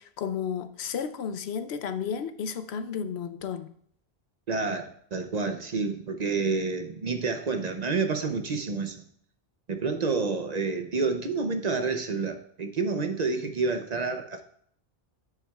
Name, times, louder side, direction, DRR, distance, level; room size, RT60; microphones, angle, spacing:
voice 1, 0.0-3.7, left 7 dB, 90° left, 0.9 m, -33 dB
voice 2, 4.5-9.0 9.7-14.4, right 4 dB, 45° right, 0.7 m, -29 dB
10.0 x 8.0 x 2.3 m
omnidirectional pair, 1.0 m